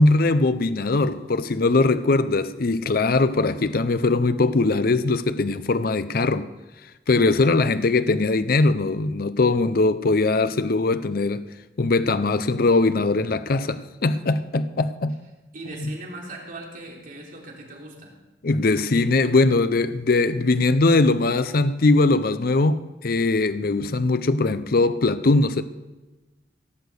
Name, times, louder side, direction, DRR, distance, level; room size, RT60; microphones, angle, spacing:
voice 1, 0.0-6.5 7.1-11.5 11.8-15.2 15.8-15.9 18.4-25.6, left 3 dB, 55° left, 0.6 m, -21 dB
voice 2, 15.5-18.1, right 2 dB, 50° right, 3.6 m, -39 dB
16.5 x 6.6 x 8.0 m
head